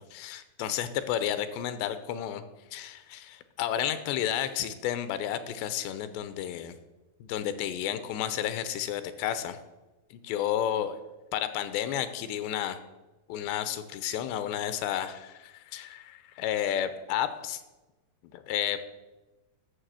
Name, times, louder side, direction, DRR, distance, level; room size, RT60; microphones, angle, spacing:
voice 1, 0.1-2.4 2.7-6.8 7.2-9.6 10.1-11.0 11.3-12.8 13.3-17.6 18.3-18.8, left 10 dB, 90° left, 11 dB, 2.9 m, -31 dB
11.5 x 6.5 x 7.6 m, 1.1 s
omnidirectional pair, 5.0 m